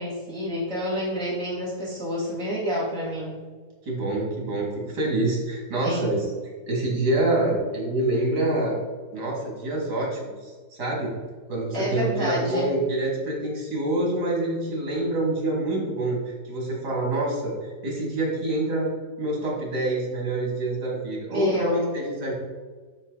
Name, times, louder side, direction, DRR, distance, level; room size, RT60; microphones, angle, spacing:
voice 1, 0.0-3.4 5.8-6.2 11.7-12.8 21.3-22.0, left 1 dB, 50° right, -7 dB, 3.5 m, -28 dB
voice 2, 3.8-6.3 6.7-8.8 9.1-10.5 10.8-11.1 11.5-18.9 19.2-22.3, right 2 dB, 80° right, -3 dB, 3.5 m, -26 dB
11.5 x 5.8 x 4.2 m, 1.5 s
omnidirectional pair, 1.7 m